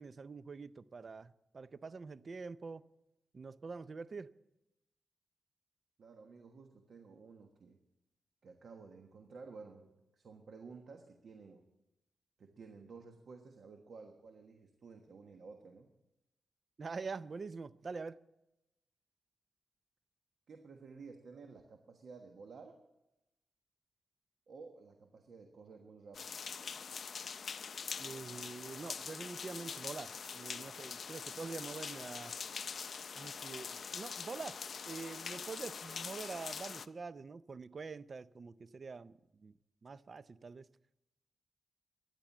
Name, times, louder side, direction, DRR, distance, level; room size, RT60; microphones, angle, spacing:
voice 1, 0.0-2.8 3.3-4.3 16.8-18.2 28.0-32.3 33.1-34.6 34.8-39.1 39.4-39.5 39.8-40.7, right 4 dB, 45° right, 0.5 m, -45 dB
voice 2, 6.0-7.8 8.4-11.6 12.4-15.9 20.5-22.8 24.5-26.4, right 4 dB, 65° right, 1.3 m, -53 dB
sound 1, 26.1-36.9, left 6 dB, 60° left, 0.5 m, -44 dB
13.0 x 10.5 x 7.3 m
cardioid pair, 95°, 0 cm